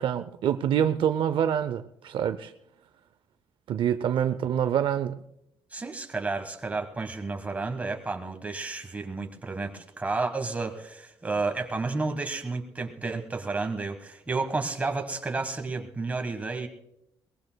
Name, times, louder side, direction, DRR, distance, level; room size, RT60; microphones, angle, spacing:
voice 1, 0.0-2.5 3.7-5.2, right 9 dB, 65° right, 11 dB, 0.5 m, -26 dB
voice 2, 5.7-16.7, right 3 dB, 15° right, 5 dB, 1.4 m, -31 dB
22.0 x 19.5 x 2.2 m, 0.84 s
cardioid pair, 145°, 9 cm